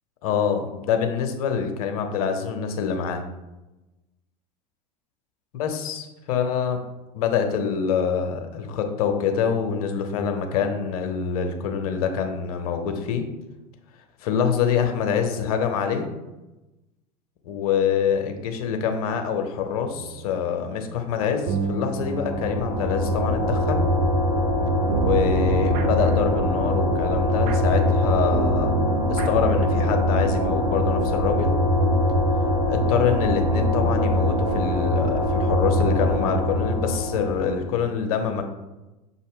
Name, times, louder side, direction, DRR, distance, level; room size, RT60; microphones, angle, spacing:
voice 1, 0.2-3.2 5.6-6.8 7.1-13.2 14.2-16.1 17.4-23.8 24.9-28.8 29.1-31.5 32.7-38.4, left 7 dB, 65° left, 5 dB, 0.7 m, -25 dB
sound 1, 19.9-30.4, right 6 dB, 60° right, 0.5 m, -32 dB
sound 2, 21.8-37.7, left 1 dB, 85° right, 0.9 m, -23 dB
5.9 x 2.1 x 3.6 m, 1.0 s
hypercardioid pair, 80°, 20 cm